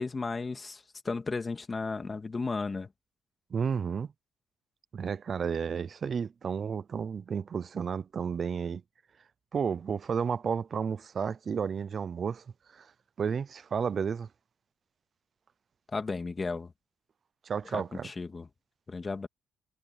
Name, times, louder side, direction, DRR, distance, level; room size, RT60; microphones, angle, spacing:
voice 1, 0.0-2.9 15.9-16.7 17.7-18.5 18.9-19.3, left 4 dB, 25° left, 2.1 m, -34 dB
voice 2, 3.5-4.1 4.9-8.8 9.5-12.4 12.7-12.9 13.2-14.3 17.4-18.1, right 6 dB, 45° right, 0.6 m, -32 dB
cardioid pair, 105°, 0 cm